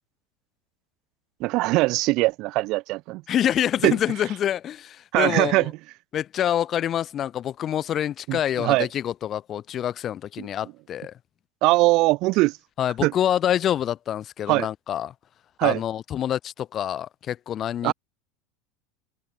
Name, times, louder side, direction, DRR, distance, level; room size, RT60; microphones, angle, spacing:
voice 1, 1.4-3.2 3.8-4.0 5.1-5.6 8.3-8.9 10.4-10.5 11.6-12.6 13.0-13.1 14.5-14.7 15.6-15.8 17.8-17.9, right 21 dB, 55° right, 2.6 m, -21 dB
voice 2, 3.3-5.7 6.1-11.1 12.8-15.1 15.6-17.9, left 10 dB, 40° left, 3.7 m, -26 dB
hypercardioid pair, 105°, 0 cm